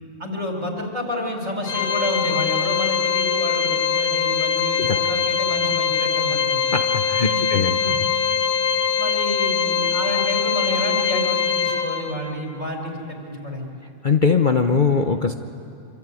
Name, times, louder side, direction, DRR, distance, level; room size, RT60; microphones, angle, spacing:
voice 1, 0.2-6.6 7.3-8.0 9.0-13.6, left 1 dB, 60° right, 1 dB, 5.0 m, -29 dB
Organ, 1.7-12.3, left 7 dB, 70° left, 2.4 m, -22 dB
voice 2, 6.7-7.8 14.0-15.3, left 5 dB, 40° left, 6 dB, 0.8 m, -20 dB
25.5 x 25.0 x 9.1 m, 2.6 s
omnidirectional pair, 1.5 m